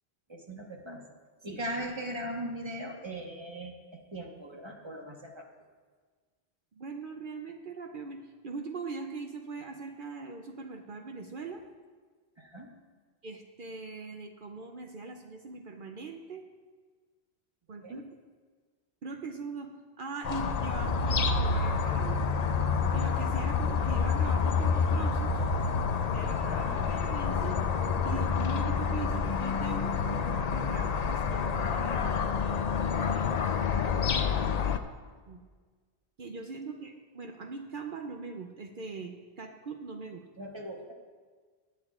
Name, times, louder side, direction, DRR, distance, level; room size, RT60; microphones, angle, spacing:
voice 1, 0.3-1.0 1.4-5.5 12.4-12.7 17.8-18.0 26.2-26.7 40.4-40.9, right 1 dB, 25° right, 1 dB, 1.2 m, -39 dB
voice 2, 6.8-11.6 13.2-16.4 17.7-18.0 19.0-22.3 22.9-25.4 26.1-27.5 28.0-32.2 33.1-34.1 35.3-35.4 36.2-40.2, right 4 dB, 55° right, 4 dB, 0.8 m, -41 dB
sound 1, 20.2-34.8, left 5 dB, 50° left, 0.5 m, -28 dB
18.5 x 8.8 x 2.4 m, 1.5 s
omnidirectional pair, 1.1 m